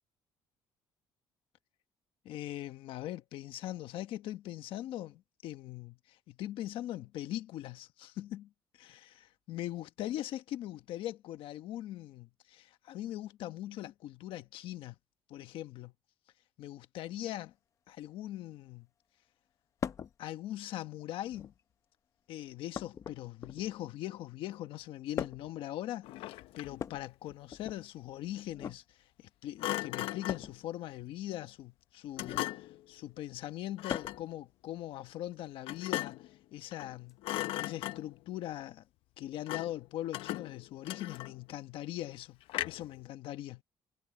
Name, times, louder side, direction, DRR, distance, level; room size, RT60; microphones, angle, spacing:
voice 1, 2.2-8.5 8.8-9.1 9.5-15.0 15.3-15.9 16.6-17.5 17.9-18.9 20.2-21.5 22.3-37.2 37.6-38.8 39.2-42.4 42.6-43.6, left 13 dB, 70° left, 1.1 m, -41 dB
sound 1, 19.8-20.1 21.2-21.7 22.7-23.8 25.2-25.6 26.7-27.8 28.5-28.8 30.3-30.6 32.1-32.5 33.9-34.3 35.8-35.9 37.1-37.2, left 8 dB, 35° left, 0.7 m, -40 dB
Thump thud, 26.0-26.9 29.6-30.5 32.2-32.8 33.8-34.3 35.7-36.3 36.7-36.9 37.2-38.2 39.5-39.8 40.1-41.5 42.5-43.0, left 16 dB, 85° left, 0.6 m, -38 dB
cardioid pair, 160°, 9 cm